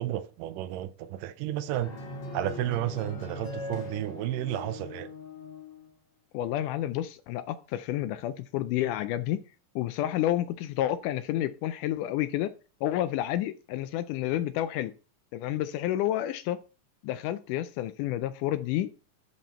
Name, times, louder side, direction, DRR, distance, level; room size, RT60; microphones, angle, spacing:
voice 1, 0.0-1.9 2.3-5.1, right 13 dB, 80° right, 2.1 m, -32 dB
sound 1, 1.7-5.9, left 2 dB, 45° left, 2.8 m, -40 dB
voice 2, 6.3-9.4 9.8-12.5 12.8-14.9 15.3-16.6 17.0-18.9, left 13 dB, 80° left, 1.9 m, -30 dB
11.0 x 4.1 x 4.3 m
omnidirectional pair, 3.9 m